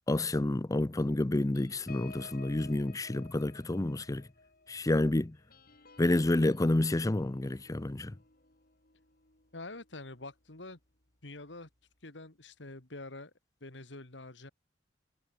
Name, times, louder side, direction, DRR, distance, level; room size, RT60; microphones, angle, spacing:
voice 1, 0.1-4.2 4.7-5.4 6.0-8.1, left 1 dB, 20° left, 0.5 m, -29 dB
sound 1, 1.5-10.5 10.9-11.1 11.4-11.7, left 3 dB, 55° left, 5.7 m, -56 dB
voice 2, 9.5-10.8 11.2-11.7 12.0-13.3 13.6-14.5, left 2 dB, 70° left, 2.5 m, -46 dB
head